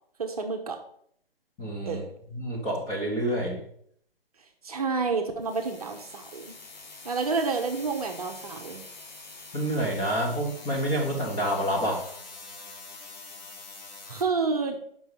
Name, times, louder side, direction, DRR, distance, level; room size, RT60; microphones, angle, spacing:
voice 1, 0.2-0.8 1.8-2.1 4.6-6.5 7.0-8.8 14.1-14.8, right 4 dB, 40° right, 4 dB, 0.8 m, -29 dB
voice 2, 1.6-2.0 2.3-3.7 9.5-12.1, right 1 dB, 10° left, -3 dB, 1.0 m, -28 dB
sound 1, 5.4-14.2, left 3 dB, 45° left, 1.2 m, -45 dB
6.8 x 5.5 x 4.8 m, 0.65 s
figure-of-eight pair, 140°, 30 cm